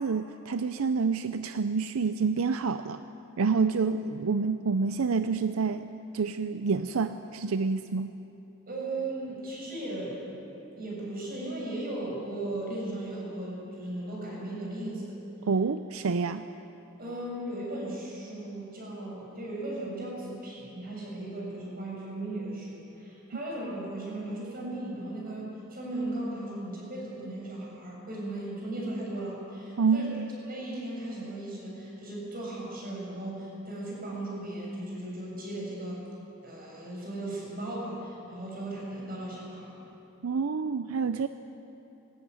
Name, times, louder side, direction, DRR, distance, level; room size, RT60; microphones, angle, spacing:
voice 1, 0.0-3.0 3.4-8.2 15.4-16.4 29.8-30.3 40.2-41.3, right 5 dB, 85° right, 10 dB, 0.6 m, -28 dB
voice 2, 8.7-10.5 10.8-15.1 17.0-30.1 30.4-36.1 36.4-39.8, right 1 dB, 45° right, -3 dB, 7.0 m, -37 dB
20.0 x 16.0 x 9.5 m, 2.9 s
head